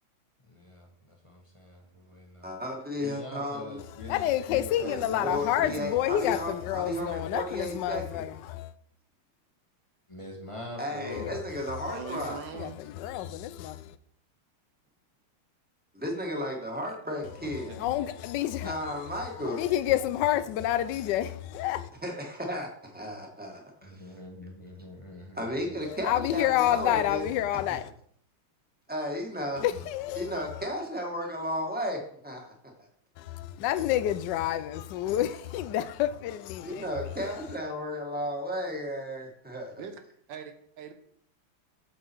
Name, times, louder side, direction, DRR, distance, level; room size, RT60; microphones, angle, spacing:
voice 1, 0.5-2.7 3.0-6.1 7.0-7.4 10.1-11.4 23.8-25.8, left 1 dB, 15° left, 1.2 m, -44 dB
voice 2, 2.4-3.8 4.8-8.3 10.8-12.4 15.9-17.7 18.6-19.6 22.0-24.0 25.3-27.2 27.7-27.8 28.9-29.7 30.2-32.5 36.6-39.8, equal, 5° right, 1.5 m, -34 dB
voice 3, 4.1-8.7 11.1-11.4 12.0-12.1 12.5-14.0 17.6-18.8 19.3-21.9 25.9-27.9 29.6-30.7 33.2-36.9, left 12 dB, 75° left, 1.0 m, -29 dB
voice 4, 11.9-12.8 16.8-17.3 17.6-17.9 39.8-40.0 40.3-40.9, right 6 dB, 65° right, 1.5 m, -42 dB
7.4 x 6.7 x 4.6 m
omnidirectional pair, 2.4 m